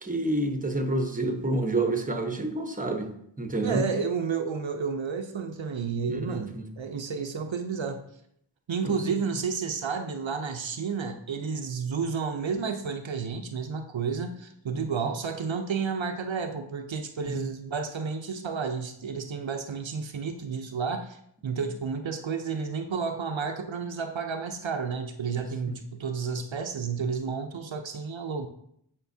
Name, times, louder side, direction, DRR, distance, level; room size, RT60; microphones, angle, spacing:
voice 1, 0.0-3.1 3.4-3.8 6.1-6.6 8.8-8.9 14.7-14.8 17.3-17.4, right 2 dB, 20° right, 5 dB, 1.0 m, -28 dB
voice 2, 3.6-8.0 8.7-28.5, right 5 dB, 75° right, 6 dB, 0.7 m, -31 dB
9.1 x 5.3 x 2.7 m, 0.71 s
wide cardioid pair, 45°, 46 cm